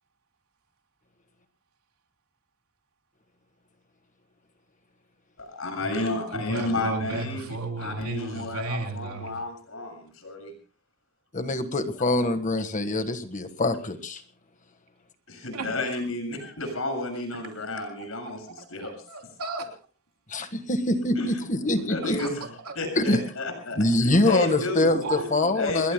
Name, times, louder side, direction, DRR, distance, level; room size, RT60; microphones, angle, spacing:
voice 1, 5.4-7.5 7.8-10.5 15.3-18.4 18.7-18.9 21.2-21.3 21.9-22.4 22.7-24.9 25.6-25.9, left 2 dB, 70° left, 5 dB, 7.0 m, -31 dB
voice 2, 6.3-9.4 15.5-15.7 17.3-17.6 18.0-19.7 22.0-22.3 22.6-22.8 24.9-25.6, right 2 dB, 90° right, 3 dB, 3.3 m, -35 dB
voice 3, 11.3-14.2 20.3-22.2 23.0-23.2 23.8-25.9, left 2 dB, 35° left, 8 dB, 1.5 m, -24 dB
29.5 x 21.0 x 2.2 m, 0.39 s
head